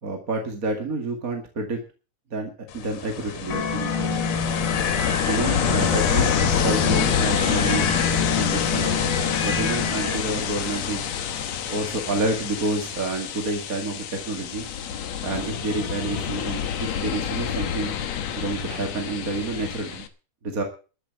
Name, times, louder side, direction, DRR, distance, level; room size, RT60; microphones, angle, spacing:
voice 1, 0.0-1.8 2.3-4.3 5.3-7.9 8.4-9.0 9.4-11.1 11.7-14.7 15.2-18.0 18.4-20.0 20.4-20.6, right 3 dB, 30° right, 3 dB, 1.9 m, -29 dB
Ocean, 2.7-20.1, left 8 dB, 60° left, 2.3 m, -27 dB
sound 1, 3.5-10.2, left 4 dB, 40° left, 1.8 m, -27 dB
13.5 x 7.9 x 8.4 m, 0.36 s
omnidirectional pair, 3.8 m